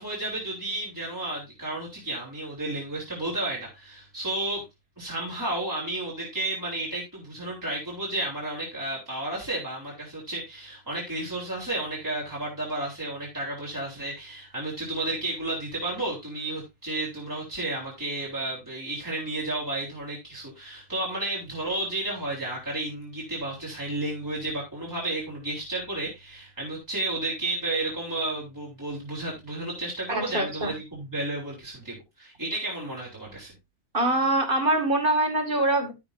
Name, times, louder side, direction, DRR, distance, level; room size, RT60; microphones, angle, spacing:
voice 1, 0.0-4.6 5.0-33.5, right 2 dB, 15° right, -4 dB, 3.7 m, -32 dB
voice 2, 30.1-30.7 33.9-35.9, right 2 dB, 40° right, 5 dB, 2.5 m, -24 dB
12.5 x 7.2 x 2.7 m, 0.22 s
omnidirectional pair, 1.4 m